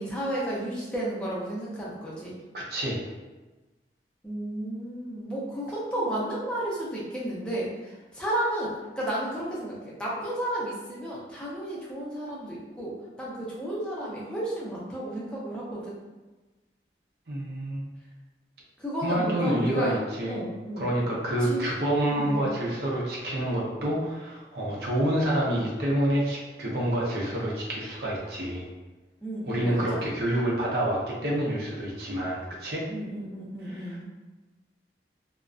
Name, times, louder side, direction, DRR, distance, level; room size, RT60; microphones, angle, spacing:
voice 1, 0.0-2.4 4.2-16.0 18.8-20.0 20.3-20.9 21.4-21.7 22.1-22.5 29.2-30.0 32.9-34.1, right 1 dB, 5° left, -7 dB, 0.5 m, -33 dB
voice 2, 2.5-3.0 17.3-17.9 19.0-20.4 20.8-28.7 29.5-32.8 33.8-34.1, right 1 dB, 65° right, -4 dB, 0.6 m, -28 dB
2.4 x 2.1 x 2.3 m, 1.2 s
head